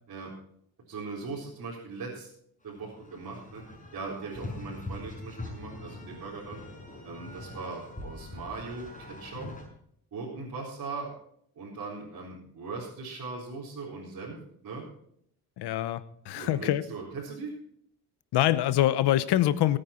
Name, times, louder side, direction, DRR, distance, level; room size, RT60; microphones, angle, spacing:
voice 1, 0.9-2.3 2.6-3.6 3.9-6.6 7.0-9.5 10.1-11.1 11.6-14.9 16.3-17.6, right 4 dB, 50° right, -6 dB, 4.1 m, -39 dB
sound 1, 2.7-9.7, left 2 dB, 20° left, 6.0 m, -43 dB
voice 2, 15.6-16.8 18.3-19.8, left 13 dB, 85° left, 15 dB, 0.9 m, -25 dB
19.5 x 9.1 x 4.4 m, 0.68 s
cardioid pair, 90°, 39 cm